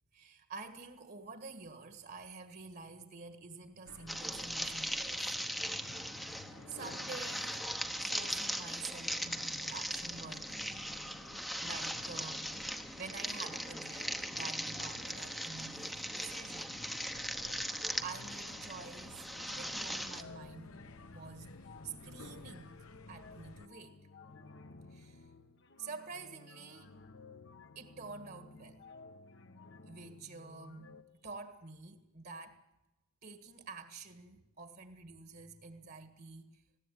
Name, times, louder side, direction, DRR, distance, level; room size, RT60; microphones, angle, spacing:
voice 1, 0.1-5.3 6.2-7.7 8.0-10.6 11.6-16.8 18.0-20.8 21.1-21.5 21.8-22.8 23.1-24.0 24.9-25.3 25.8-26.9 27.8-28.8 29.8-32.6 33.2-36.6, right 4 dB, 45° right, 8 dB, 1.7 m, -48 dB
sound 1, 3.9-23.7, left 3 dB, 75° left, 1.0 m, -54 dB
sound 2, 4.1-20.2, equal, ahead, 1.0 m, -39 dB
sound 3, 19.9-31.0, left 3 dB, 55° left, 1.2 m, -55 dB
20.5 x 16.0 x 9.4 m, 0.94 s
head